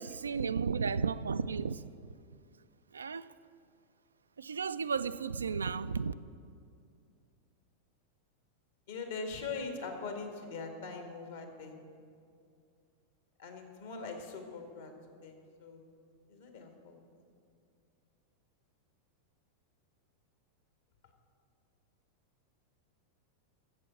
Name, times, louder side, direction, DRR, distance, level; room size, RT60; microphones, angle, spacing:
voice 1, 0.0-1.8 2.9-3.3 4.4-6.1, right 5 dB, 70° right, 14 dB, 0.3 m, -33 dB
voice 2, 8.9-11.8 13.4-14.9 15.2-16.0 16.3-17.0, left 4 dB, 60° left, 4 dB, 1.8 m, -42 dB
12.5 x 7.6 x 7.2 m, 2.4 s
figure-of-eight pair, 90°, 0 cm